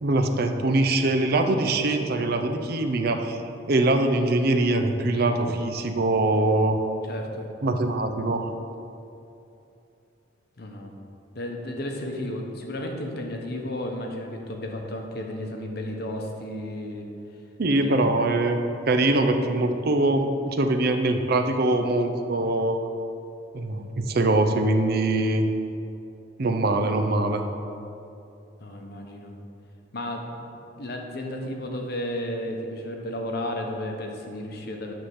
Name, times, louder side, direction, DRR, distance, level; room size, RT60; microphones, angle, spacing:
voice 1, 0.0-3.4 3.7-6.8 7.6-8.5 17.6-18.6 18.9-22.8 23.5-25.5 26.4-27.5, right 2 dB, 50° right, 6 dB, 0.5 m, -23 dB
voice 2, 7.1-7.5 10.6-10.9 11.3-17.1 17.8-18.2 28.6-29.3 29.9-30.5 30.8-34.9, left 1 dB, 50° left, 2 dB, 1.0 m, -33 dB
9.4 x 3.6 x 7.0 m, 2.7 s
head